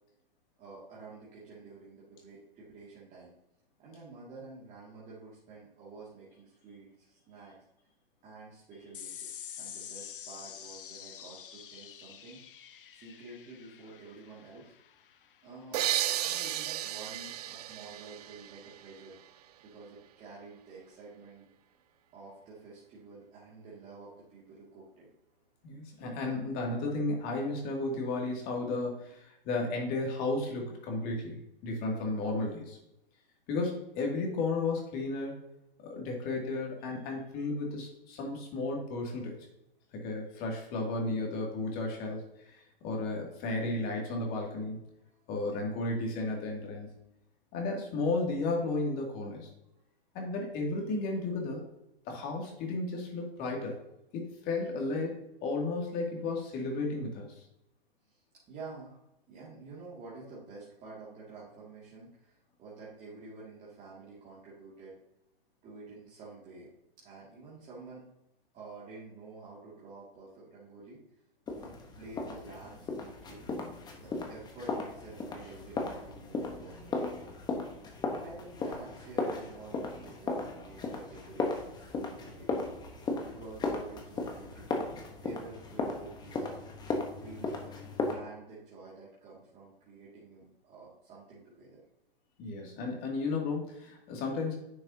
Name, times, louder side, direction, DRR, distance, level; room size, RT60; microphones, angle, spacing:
voice 1, 0.6-3.3 3.8-7.6 8.2-12.4 13.0-14.7 15.4-15.8 16.2-19.2 19.6-21.5 22.1-25.1 58.1-58.2 58.5-59.0 59.3-64.9 65.6-66.7 67.0-68.1 68.5-71.0 71.6-73.4 74.0-77.3 78.1-82.6 83.2-84.9 85.2-86.6 87.2-87.7 88.1-91.8, right 3 dB, 25° right, -8 dB, 2.3 m, -49 dB
sound 1, 8.9-15.7, left 9 dB, 60° left, 0.8 m, -47 dB
sound 2, 15.7-19.3, right 13 dB, 45° right, 0.4 m, -34 dB
voice 2, 25.6-32.8 33.5-35.3 35.8-39.3 39.9-44.8 45.3-47.0 47.5-49.5 50.1-51.6 52.1-53.8 54.1-57.3 92.4-94.6, left 2 dB, 30° left, 0 dB, 2.4 m, -33 dB
sound 3, 71.5-88.1, left 3 dB, 15° left, 1.0 m, -36 dB
10.0 x 6.0 x 2.8 m, 0.85 s
figure-of-eight pair, 120°, 30 cm